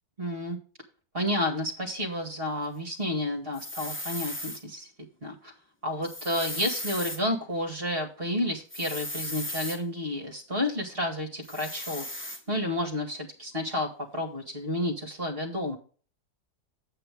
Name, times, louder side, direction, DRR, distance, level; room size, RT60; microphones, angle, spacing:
voice 1, 0.2-0.6 1.1-4.9 5.2-5.5 5.8-15.8, left 1 dB, 35° right, 2 dB, 2.2 m, -31 dB
sound 1, 3.5-4.6 6.0-7.2 8.7-9.8 11.4-12.4, left 1 dB, 10° left, 0.6 m, -36 dB
8.6 x 8.6 x 3.5 m, 0.40 s
omnidirectional pair, 1.8 m